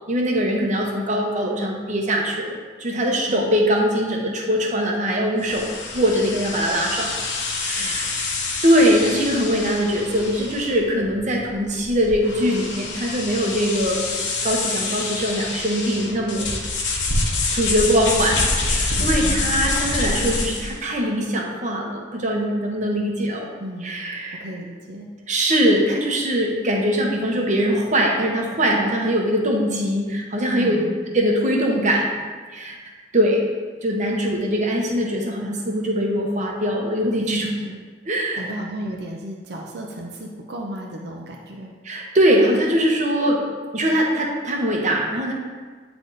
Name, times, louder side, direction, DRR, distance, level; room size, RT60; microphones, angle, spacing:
voice 1, 0.1-7.3 7.6-8.4 8.6-14.1 14.4-16.5 17.5-23.5 23.8-24.4 25.3-30.8 31.1-32.1 32.5-32.7 33.1-33.4 33.8-37.5 38.1-38.4 41.8-43.4 43.7-45.3, equal, 45° right, 0 dB, 1.0 m, -22 dB
sound 1, 5.4-20.8, left 3 dB, 85° left, 1.2 m, -26 dB
voice 2, 7.8-8.5 19.0-19.7 23.6-24.0 24.3-25.1 30.6-31.1 37.5-37.8 38.3-41.7, equal, 65° right, 0 dB, 0.7 m, -34 dB
9.1 x 3.5 x 4.0 m, 1.5 s
head